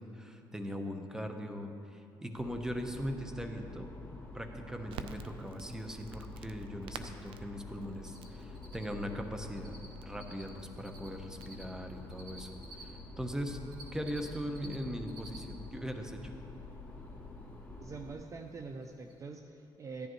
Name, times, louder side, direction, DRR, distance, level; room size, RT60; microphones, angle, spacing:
voice 1, 0.0-3.9 4.3-13.6 13.9-16.3, equal, 5° right, 5 dB, 1.1 m, -40 dB
sound 1, 2.4-18.1, left 3 dB, 15° left, 2.3 m, -48 dB
Crackle, 4.9-12.8, right 6 dB, 75° right, 0.5 m, -52 dB
Cricket, 8.0-8.3 8.5-12.8 13.4-14.8 15.0-15.4 15.7-15.8 18.3-18.4 18.8-18.9 19.1-19.2, right 2 dB, 55° right, 2.7 m, -52 dB
voice 2, 17.8-20.1, right 4 dB, 35° right, 5 dB, 0.6 m, -44 dB
15.0 x 10.5 x 3.2 m, 2.7 s
cardioid pair, 80°, 9 cm